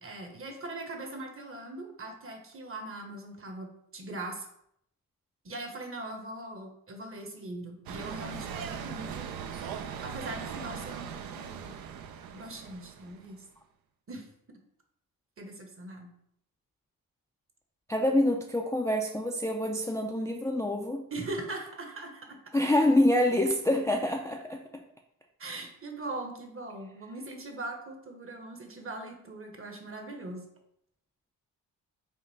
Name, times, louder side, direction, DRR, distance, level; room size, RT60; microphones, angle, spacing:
voice 1, 0.0-4.5 5.4-9.3 10.0-11.7 12.3-13.4 14.1-14.6 15.4-16.1 21.1-22.6 25.4-30.5, right 2 dB, 35° right, 4 dB, 1.0 m, -41 dB
sound 1, 7.9-13.3, right 7 dB, 70° right, 0.5 m, -39 dB
voice 2, 17.9-21.1 22.5-24.8, left 1 dB, 10° left, 1 dB, 0.4 m, -26 dB
3.7 x 2.5 x 4.0 m, 0.74 s
supercardioid pair, 55°, 36 cm